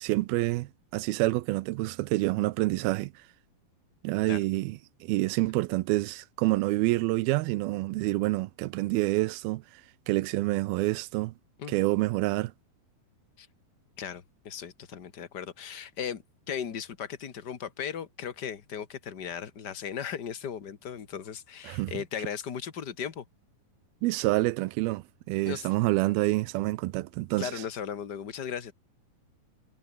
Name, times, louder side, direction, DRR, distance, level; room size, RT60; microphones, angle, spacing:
voice 1, 0.0-3.1 4.0-9.6 10.1-11.3 11.7-12.5 21.6-21.9 24.0-27.5, right 19 dB, 85° right, 2.5 m, -27 dB
voice 2, 14.0-23.2 25.4-25.7 27.4-28.7, left 8 dB, 45° left, 1.4 m, -37 dB
omnidirectional pair, 4.4 m